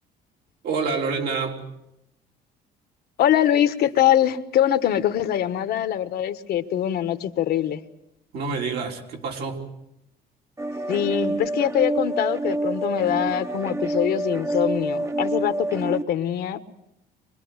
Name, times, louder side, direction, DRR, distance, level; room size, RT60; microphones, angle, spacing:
voice 1, 0.6-1.6 8.3-9.6, right 4 dB, 70° right, 1 dB, 3.7 m, -27 dB
voice 2, 3.2-7.8 10.9-16.7, left 10 dB, 70° left, 10 dB, 1.4 m, -23 dB
sound 1, 10.6-16.0, right 2 dB, 15° right, 0.9 m, -27 dB
24.5 x 20.5 x 8.1 m, 0.83 s
cardioid pair, 110°, 17 cm